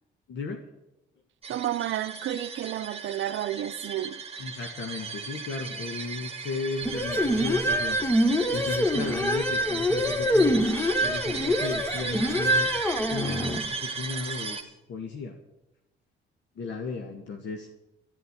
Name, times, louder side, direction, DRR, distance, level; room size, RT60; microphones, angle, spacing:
voice 1, 0.3-0.6 4.4-8.0 8.5-10.7 11.0-12.7 13.1-15.4 16.5-17.7, left 4 dB, 65° left, 1.4 m, -35 dB
sound 1, 1.4-14.6, right 5 dB, 30° right, 1.5 m, -36 dB
voice 2, 1.5-4.4, right 12 dB, 70° right, 0.7 m, -31 dB
sound 2, 6.9-13.6, equal, 10° left, 1.1 m, -25 dB
12.5 x 7.1 x 9.5 m
cardioid pair, 90°, 20 cm